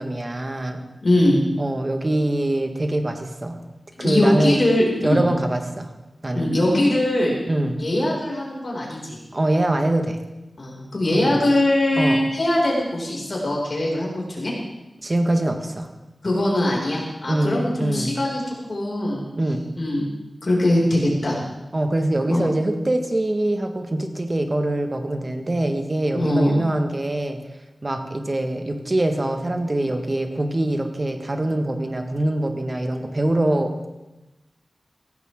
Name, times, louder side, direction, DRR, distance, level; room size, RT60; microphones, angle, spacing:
voice 1, 0.0-0.8 1.6-3.6 4.0-4.6 5.0-5.9 6.2-6.5 7.5-7.8 9.3-10.2 11.1-11.4 12.0-12.2 15.0-15.9 17.2-18.1 19.4-19.7 21.7-27.4 27.8-33.8, right 1 dB, 35° right, 5 dB, 1.7 m, -23 dB
voice 2, 1.0-1.4 4.0-5.2 6.3-7.4 7.8-9.2 10.6-14.5 16.2-18.4 18.7-19.2 19.8-20.1 20.4-21.4 22.3-22.5 26.1-26.6, left 1 dB, 50° left, -3 dB, 6.0 m, -21 dB
17.5 x 15.5 x 3.8 m, 1.0 s
wide cardioid pair, 70°, 0 cm